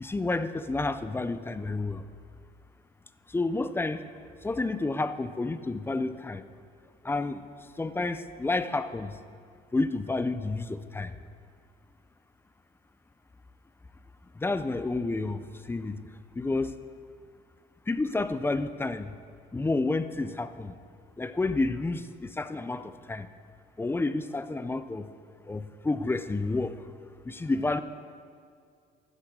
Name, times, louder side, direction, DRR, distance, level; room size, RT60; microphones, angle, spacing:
voice 1, 0.0-2.0 3.3-4.0 4.4-6.4 7.0-7.4 7.8-9.1 9.7-11.1 14.4-15.4 15.7-16.0 16.4-16.8 17.9-19.1 19.5-20.7 21.2-23.3 23.8-25.1 25.5-26.8 27.3-27.8, left 3 dB, 15° left, 12 dB, 0.5 m, -30 dB
15.0 x 11.5 x 3.7 m, 2.3 s
cardioid pair, 110°, 17 cm